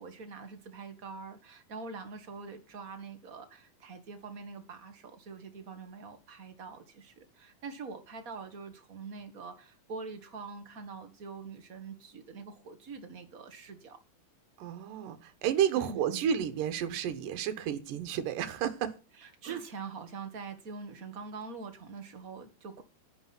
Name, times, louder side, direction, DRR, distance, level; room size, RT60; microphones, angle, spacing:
voice 1, 0.0-14.0 15.8-16.3 19.1-22.8, right 4 dB, 30° right, 1.9 m, -44 dB
voice 2, 14.6-18.9 19.4-19.5, right 9 dB, 80° right, 2.9 m, -31 dB
10.5 x 10.5 x 6.1 m
omnidirectional pair, 3.8 m